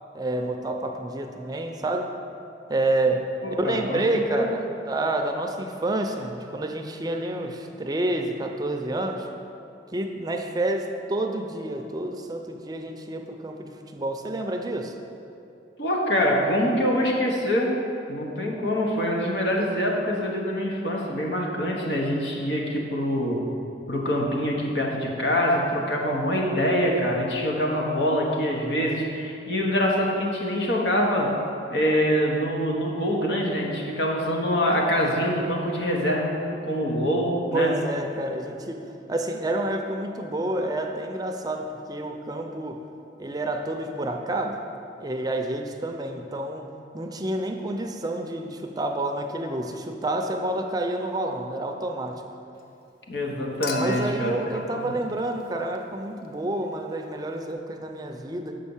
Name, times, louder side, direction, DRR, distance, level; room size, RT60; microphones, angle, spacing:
voice 1, 0.1-2.2 2.7-9.3 9.9-15.0 37.5-42.8 43.2-44.7 45.0-46.7 46.9-52.3 53.8-58.6, right 1 dB, 20° right, 4 dB, 0.5 m, -29 dB
voice 2, 3.4-4.5 15.8-17.8 18.1-23.5 23.9-31.4 31.7-37.8 53.1-54.3 54.8-54.9, equal, 80° left, 0 dB, 1.3 m, -25 dB
Human group actions / Chink clink / Liquid, 53.6-56.0 57.5-57.6, left 3 dB, 55° left, 0.7 m, -38 dB
6.6 x 5.4 x 7.2 m, 2.7 s
head